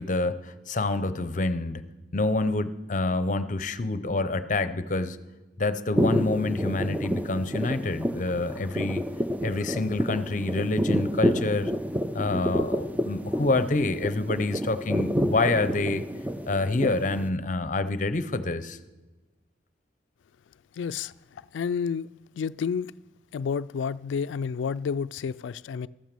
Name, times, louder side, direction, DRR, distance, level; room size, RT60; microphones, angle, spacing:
voice 1, 0.0-1.8 2.1-5.2 5.6-9.0 9.4-11.7 12.1-16.0 16.5-18.8, left 2 dB, 40° left, 0.7 m, -27 dB
sound 1, 5.9-17.3, equal, 10° right, 0.4 m, -29 dB
voice 2, 20.8-22.1 22.4-22.9 23.3-25.9, left 6 dB, 80° left, 0.3 m, -30 dB
14.0 x 9.2 x 6.8 m
head